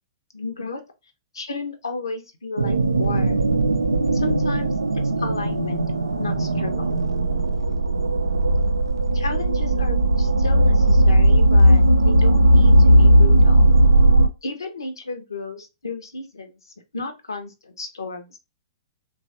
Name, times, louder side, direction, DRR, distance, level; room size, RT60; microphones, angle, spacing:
voice 1, 0.3-0.8 1.3-3.4 4.1-5.8 6.2-7.0 9.1-13.7 14.4-18.4, left 3 dB, 70° left, 0.7 m, -33 dB
sound 1, 2.6-14.3, right 1 dB, 80° right, 0.3 m, -17 dB
3.1 x 2.4 x 2.6 m
figure-of-eight pair, 110°, 2 cm